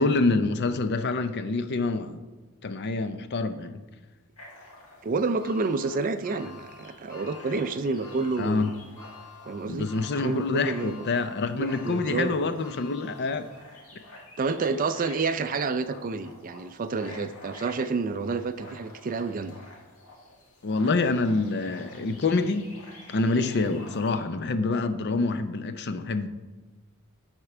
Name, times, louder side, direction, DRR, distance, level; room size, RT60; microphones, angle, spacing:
voice 1, 0.0-2.2 2.6-3.8 8.4-8.7 9.7-13.5 20.6-22.7 23.1-26.3, left 3 dB, 50° left, 0.5 m, -26 dB
sound 1, 4.4-24.2, left 1 dB, 70° left, 2.0 m, -48 dB
voice 2, 5.0-8.7 9.5-11.1 11.6-12.4 14.4-19.5 25.1-25.2, right 4 dB, 40° right, 0.4 m, -29 dB
sound 2, 5.4-13.8 14.2-14.3 15.5-15.6, left 6 dB, 15° left, 1.4 m, -49 dB
9.8 x 4.4 x 6.0 m
head